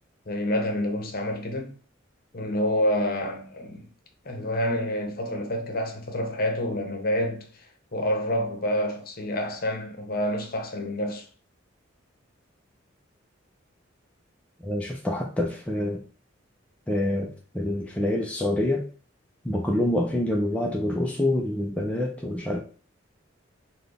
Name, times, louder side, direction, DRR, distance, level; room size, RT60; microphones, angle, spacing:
voice 1, 0.3-1.8 2.3-3.8 4.2-7.7 7.9-11.3, left 1 dB, 45° left, 0.8 m, -28 dB
voice 2, 14.6-16.0 16.9-18.8 19.4-22.6, left 1 dB, 5° left, 0.4 m, -26 dB
4.0 x 2.2 x 3.3 m
head